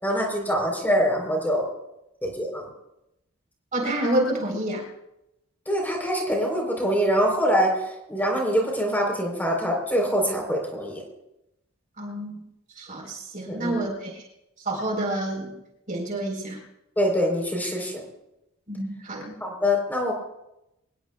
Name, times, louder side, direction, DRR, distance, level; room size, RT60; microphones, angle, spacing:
voice 1, 0.0-1.7 2.2-2.6 5.7-7.8 8.1-11.0 13.5-13.8 17.0-18.0 19.4-20.1, equal, 10° left, 0 dB, 3.9 m, -24 dB
voice 2, 3.7-4.8 12.0-12.3 12.8-14.2 14.6-15.5 15.9-16.6 18.7-19.4, right 1 dB, 40° right, 0 dB, 4.1 m, -28 dB
25.0 x 20.0 x 2.4 m, 0.89 s
head